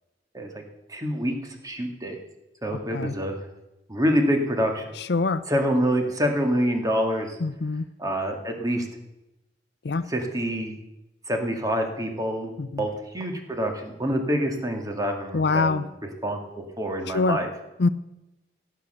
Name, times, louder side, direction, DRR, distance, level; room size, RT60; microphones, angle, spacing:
voice 1, 0.9-1.3 1.6-2.2 2.6-3.3 3.9-4.8 5.5-7.4 8.0-8.9 10.1-10.8 11.3-15.9 16.2-17.5, equal, 20° right, 3 dB, 2.0 m, -26 dB
voice 2, 5.1-5.4 7.4-7.8 9.8-10.0 12.6-12.8 15.3-15.8 17.1-17.4 17.8-17.9, left 3 dB, 65° left, 13 dB, 0.6 m, -23 dB
17.0 x 8.4 x 6.8 m, 0.95 s
head